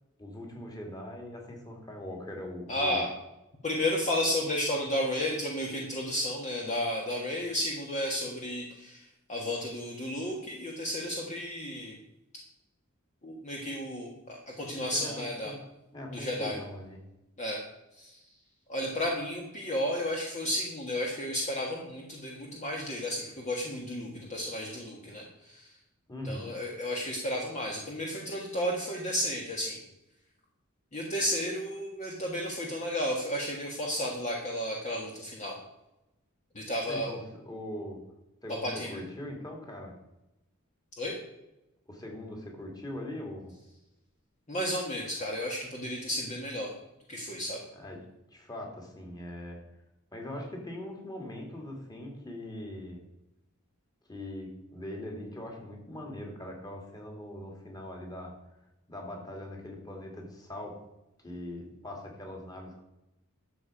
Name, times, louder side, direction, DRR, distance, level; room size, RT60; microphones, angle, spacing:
voice 1, 0.2-3.0 14.7-15.6 15.9-17.0 26.1-26.5 36.9-38.0 38.4-39.9 41.9-43.5 47.7-48.0 48.3-49.6 50.1-53.0 54.1-58.3 58.9-60.8 61.2-62.8, left 1 dB, 20° left, 1 dB, 2.5 m, -41 dB
voice 2, 2.7-3.1 3.6-9.0 9.3-12.0 13.2-15.5 16.1-16.6 17.4-17.6 18.0-18.2 18.7-25.7 26.2-29.8 30.9-35.6 36.6-37.2 38.6-39.0 41.0-41.1 44.5-46.7 47.1-47.6, left 1 dB, 35° left, -1 dB, 1.6 m, -32 dB
12.0 x 7.1 x 5.1 m, 0.93 s
head